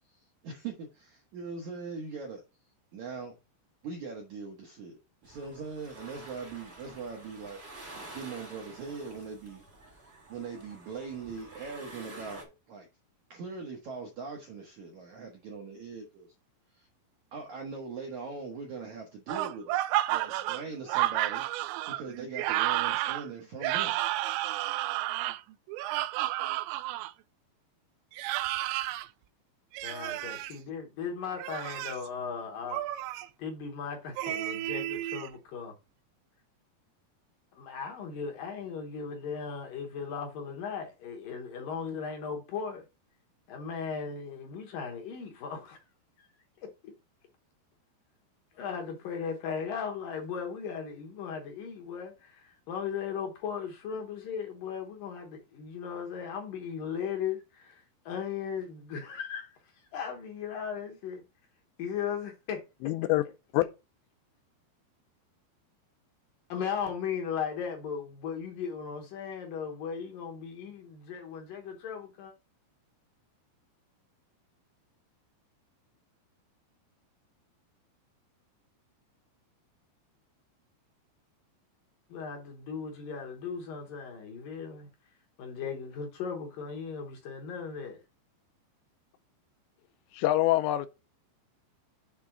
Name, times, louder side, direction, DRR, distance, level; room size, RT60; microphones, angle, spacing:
voice 1, 0.4-2.4 2.9-3.4 3.8-7.6 8.1-9.7 10.3-12.9 13.3-16.3 16.8-16.9 17.3-19.7 20.1-24.0, right 4 dB, 75° right, 1.7 m, -41 dB
sound 1, 5.2-12.4, right 2 dB, 45° right, 0.8 m, -49 dB
sound 2, 19.3-27.1 28.1-29.1 29.7-30.5 31.3-32.1 32.7-33.3 34.2-35.3, right 15 dB, 90° right, 2.8 m, -31 dB
voice 2, 29.8-32.8 33.4-35.7 37.5-42.9 43.5-45.8 46.2-46.3 46.6-46.9 48.5-61.2 61.8-62.6 66.5-72.3 82.1-84.9 85.4-88.0, left 6 dB, 65° left, 2.3 m, -37 dB
voice 3, 62.8-63.2 63.5-63.6 90.1-90.9, left 15 dB, 85° left, 2.9 m, -25 dB
7.6 x 3.6 x 5.8 m
omnidirectional pair, 5.1 m